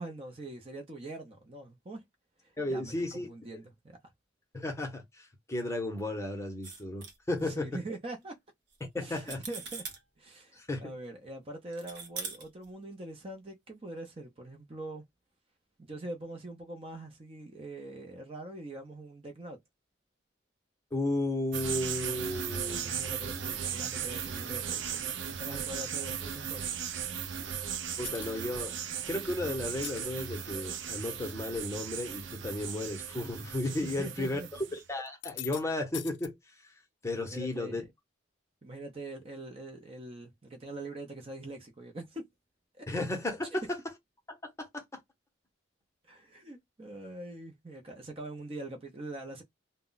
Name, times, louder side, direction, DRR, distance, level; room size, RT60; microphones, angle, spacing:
voice 1, 0.0-2.0 2.4-4.1 7.4-8.4 9.0-9.8 10.2-15.0 15.8-19.6 22.8-26.8 33.8-34.5 37.3-37.9 38.6-42.3 42.7-42.9 43.5-43.6 46.0-49.4, right 2 dB, 30° right, 0.6 m, -43 dB
voice 2, 2.6-3.3 4.5-7.7 8.9-9.4 10.6-10.9 20.9-22.9 28.0-28.7 29.1-34.4 34.7-36.4 37.0-37.8 42.9-43.8 44.3-45.0, left 2 dB, 15° left, 0.7 m, -34 dB
sound 1, 6.6-7.4 8.7-8.8 9.2-10.0 11.7-12.7, right 5 dB, 60° right, 0.8 m, -41 dB
sound 2, 21.5-34.8, right 8 dB, 75° right, 0.4 m, -37 dB
sound 3, 28.0-28.4 29.7-30.0 30.7-31.2 31.6-32.0 32.3-32.5 33.3-33.4 35.1-35.6 35.9-36.3, left 14 dB, 75° left, 0.4 m, -43 dB
2.2 x 2.1 x 3.8 m
head